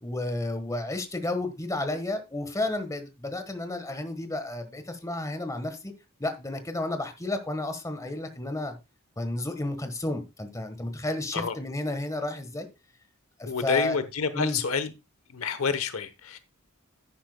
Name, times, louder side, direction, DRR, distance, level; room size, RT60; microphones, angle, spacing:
voice 1, 0.0-5.9 6.2-8.7 9.2-12.7 13.4-14.0 14.3-14.6, left 2 dB, 15° left, 1.3 m, -32 dB
voice 2, 13.4-14.9 15.3-16.4, left 5 dB, 75° left, 1.0 m, -28 dB
10.0 x 10.0 x 2.2 m
head